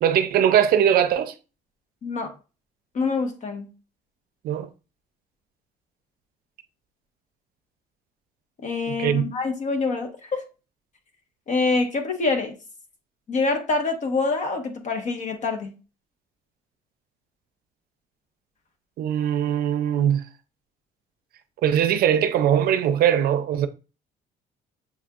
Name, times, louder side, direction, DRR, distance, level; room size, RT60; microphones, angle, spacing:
voice 1, 0.0-1.3 4.4-4.7 8.9-9.3 19.0-20.2 21.6-23.7, right 9 dB, 65° right, 0.5 m, -21 dB
voice 2, 2.9-3.7 8.6-10.4 11.5-12.5 13.3-15.7, left 3 dB, 45° left, 1.1 m, -25 dB
7.1 x 2.5 x 2.4 m
cardioid pair, 110°, 17 cm